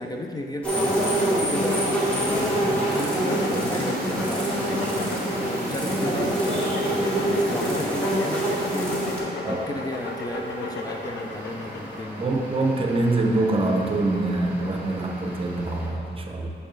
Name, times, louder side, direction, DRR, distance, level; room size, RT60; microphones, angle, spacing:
voice 1, 0.0-12.7, left 1 dB, 20° left, 2 dB, 0.5 m, -34 dB
sound 1, 0.6-9.2, right 1 dB, 5° left, 1.8 m, -25 dB
sound 2, 0.7-15.9, right 1 dB, 10° right, 1.5 m, -39 dB
sound 3, 1.0-12.0, left 2 dB, 90° left, 0.9 m, -35 dB
voice 2, 12.2-16.5, right 2 dB, 30° right, 2 dB, 0.7 m, -24 dB
8.8 x 6.5 x 3.2 m, 2.5 s
wide cardioid pair, 125°, 18 cm